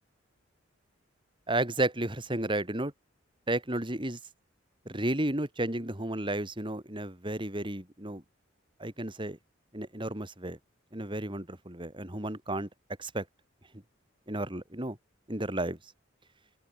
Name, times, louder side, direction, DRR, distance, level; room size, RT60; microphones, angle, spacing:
voice 1, 1.5-2.9 3.5-4.2 4.8-8.2 8.8-9.4 9.7-10.6 10.9-12.7 13.0-13.2 14.3-15.0 15.3-15.8, right 1 dB, 25° right, 3.4 m, -32 dB
open air
head